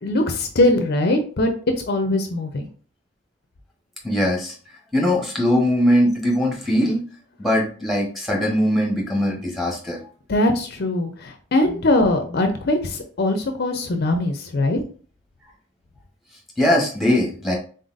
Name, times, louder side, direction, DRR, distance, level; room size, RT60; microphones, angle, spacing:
voice 1, 0.0-1.5 1.9-2.6 10.3-14.8, left 1 dB, 50° left, 5 dB, 0.5 m, -21 dB
voice 2, 4.0-4.5 4.9-7.0 7.4-10.0 16.6-17.6, equal, ahead, -1 dB, 1.0 m, -20 dB
3.9 x 3.9 x 2.5 m, 0.41 s
head